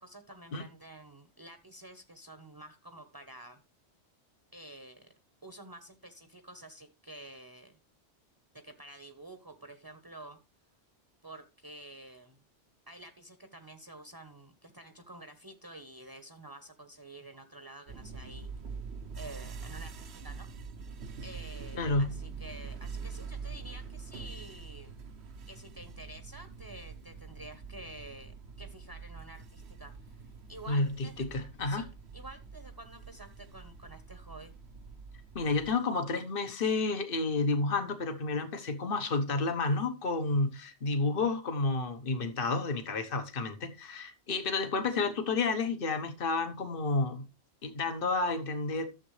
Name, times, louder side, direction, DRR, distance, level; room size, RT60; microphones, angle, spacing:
voice 1, 0.0-3.6 4.5-5.1 5.4-7.7 8.5-10.4 11.2-12.4 12.9-18.5 19.2-20.5 21.2-25.0 25.5-30.2 30.5-31.2 31.7-31.9 32.1-34.5, right 1 dB, 20° right, 1.0 m, -49 dB
sound 1, 17.9-35.7, right 5 dB, 65° right, 1.2 m, -45 dB
voice 2, 21.7-22.1 30.7-31.8 35.3-47.2 47.6-48.9, left 3 dB, 50° left, 1.4 m, -30 dB
13.0 x 7.4 x 3.3 m
omnidirectional pair, 1.2 m